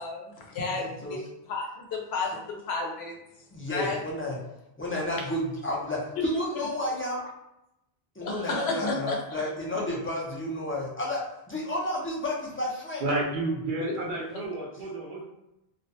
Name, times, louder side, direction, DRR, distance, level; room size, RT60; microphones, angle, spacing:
voice 1, 0.0-3.2 3.7-4.0 4.9-5.2 8.2-9.2 13.8-14.0, left 3 dB, 90° left, 0 dB, 0.8 m, -32 dB
voice 2, 0.8-1.2 2.3-2.4 3.5-4.4 4.8-7.2 8.2-13.0, left 1 dB, 20° left, -5 dB, 0.4 m, -31 dB
voice 3, 13.0-15.2, right 2 dB, 60° right, -2 dB, 0.7 m, -30 dB
2.4 x 2.1 x 2.6 m, 0.86 s
omnidirectional pair, 1.0 m